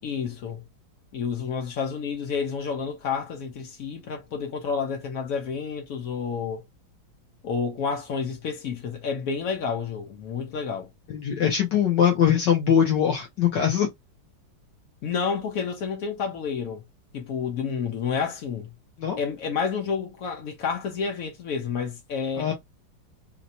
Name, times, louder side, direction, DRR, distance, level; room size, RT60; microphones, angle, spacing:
voice 1, 0.0-0.6 1.1-6.6 7.4-10.9 15.0-16.8 17.1-18.7 19.2-22.5, left 6 dB, 85° left, 0.7 m, -30 dB
voice 2, 11.1-13.9 19.0-19.2 22.4-22.5, left 8 dB, 70° left, 1.2 m, -22 dB
4.0 x 2.1 x 2.7 m
omnidirectional pair, 2.2 m